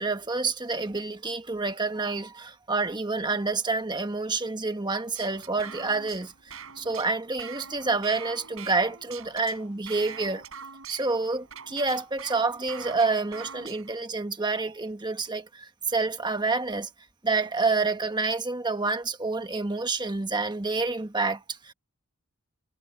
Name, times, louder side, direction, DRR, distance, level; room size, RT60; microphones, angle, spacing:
voice 1, 0.0-10.4 10.9-16.9 17.2-21.7, right 3 dB, 20° right, 1.2 m, -28 dB
sound 1, 5.1-14.0, right 7 dB, 65° right, 7.0 m, -44 dB
head